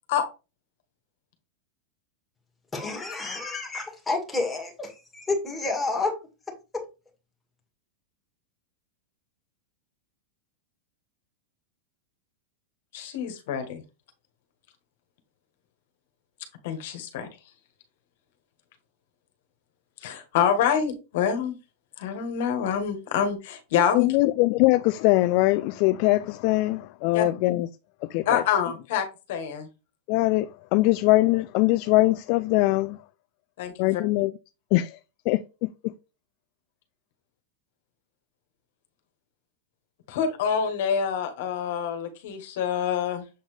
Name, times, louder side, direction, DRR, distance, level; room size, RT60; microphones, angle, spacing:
voice 1, 2.7-6.2 6.7-6.8, left 3 dB, 10° left, 2.0 m, -29 dB
voice 2, 12.9-13.8 16.6-17.3 20.0-21.5 22.0-24.1 27.1-27.2 28.2-29.7 33.6-34.0 40.1-43.2, left 8 dB, 65° left, 1.5 m, -26 dB
voice 3, 23.9-27.7 28.1-28.4 30.1-33.0 33.8-34.3 34.7-35.0 35.3-35.7, left 19 dB, 50° left, 0.3 m, -22 dB
7.5 x 4.0 x 3.3 m
supercardioid pair, 145°, 0 cm